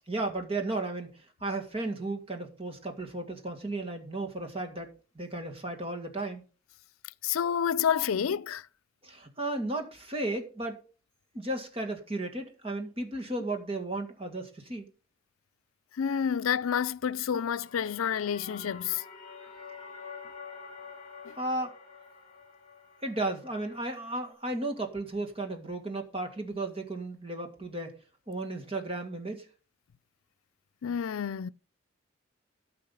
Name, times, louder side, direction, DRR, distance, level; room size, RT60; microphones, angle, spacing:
voice 1, 0.1-6.4 9.0-10.8 11.3-14.9 21.4-21.7 23.0-27.9 28.3-29.5, right 2 dB, 25° right, 1.9 m, -34 dB
voice 2, 7.2-8.6 16.0-19.0 21.2-21.3 30.8-31.5, left 8 dB, 85° left, 0.4 m, -29 dB
sound 1, 17.4-24.3, left 5 dB, 35° left, 2.8 m, -48 dB
13.5 x 5.7 x 5.4 m
head